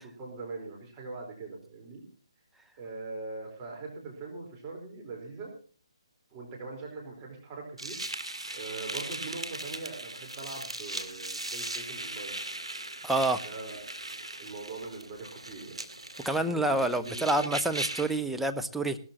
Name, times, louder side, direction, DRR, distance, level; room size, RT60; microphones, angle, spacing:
voice 1, 0.0-2.1 2.8-5.5 6.3-12.4 13.3-13.9 14.4-15.8 16.3-17.5, right 3 dB, 20° right, -2 dB, 4.4 m, -42 dB
sound 1, 7.8-18.2, right 2 dB, 90° right, 2.1 m, -39 dB
voice 2, 13.0-13.4 16.2-19.0, right 2 dB, ahead, 5 dB, 0.7 m, -27 dB
18.0 x 13.5 x 3.0 m, 0.40 s
figure-of-eight pair, 145°, 3 cm